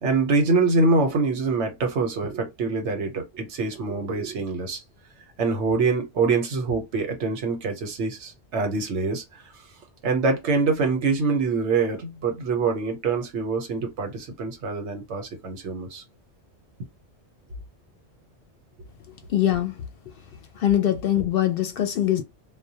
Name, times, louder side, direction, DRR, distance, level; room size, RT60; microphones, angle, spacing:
voice 1, 0.0-4.8 5.4-9.4 10.0-16.0, right 4 dB, 85° right, 1.1 m, -25 dB
voice 2, 19.3-19.7 20.6-22.2, left 11 dB, 65° left, 0.7 m, -22 dB
2.3 x 2.2 x 2.6 m
omnidirectional pair, 1.1 m